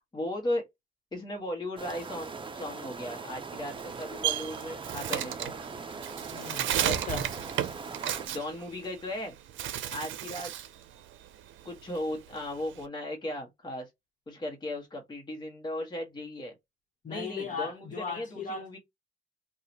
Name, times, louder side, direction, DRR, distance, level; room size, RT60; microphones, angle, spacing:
voice 1, 0.1-0.7 1.1-5.6 8.3-9.3 9.9-10.5 11.6-13.9 14.3-16.5 17.1-18.8, left 1 dB, 20° left, 1.2 m, -36 dB
sound 1, 1.8-8.3, right 4 dB, 25° right, 0.6 m, -41 dB
Bird, 3.7-9.2 9.5-10.8 11.1-12.8, right 11 dB, 75° right, 0.6 m, -33 dB
voice 2, 6.3-7.3 17.0-18.7, left 4 dB, 40° left, 1.3 m, -37 dB
2.8 x 2.4 x 4.0 m
cardioid pair, 90°, 20 cm